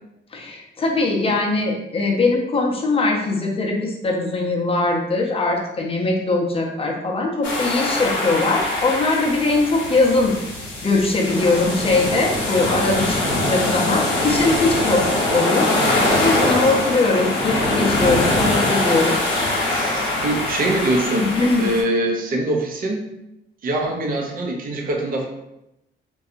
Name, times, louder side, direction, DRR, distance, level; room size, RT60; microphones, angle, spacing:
voice 1, 0.3-10.4 10.8-15.7 16.2-19.2 21.2-21.7, left 3 dB, 30° left, 0 dB, 0.6 m, -21 dB
sound 1, 7.4-21.8, left 2 dB, 70° left, 0.9 m, -22 dB
voice 2, 19.7-21.3 21.6-23.1 23.6-25.2, right 1 dB, 45° right, 0 dB, 0.6 m, -23 dB
2.7 x 2.3 x 2.5 m, 0.90 s
cardioid pair, 90°, 20 cm